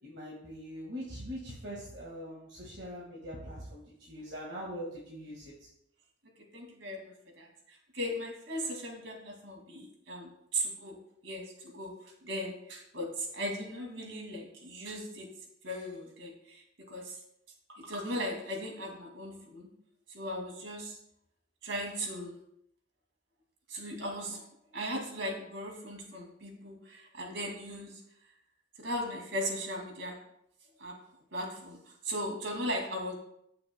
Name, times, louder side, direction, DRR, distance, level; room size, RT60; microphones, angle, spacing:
voice 1, 0.0-5.7, equal, 65° right, -4 dB, 1.8 m, -42 dB
voice 2, 6.5-11.0 11.2-15.3 15.6-17.2 17.7-19.7 20.1-21.0 21.6-22.4 23.7-24.5 24.7-28.0 28.8-30.2 30.8-30.9 31.3-33.1, equal, 85° right, 0 dB, 2.3 m, -38 dB
15.0 x 6.7 x 2.2 m, 0.76 s
head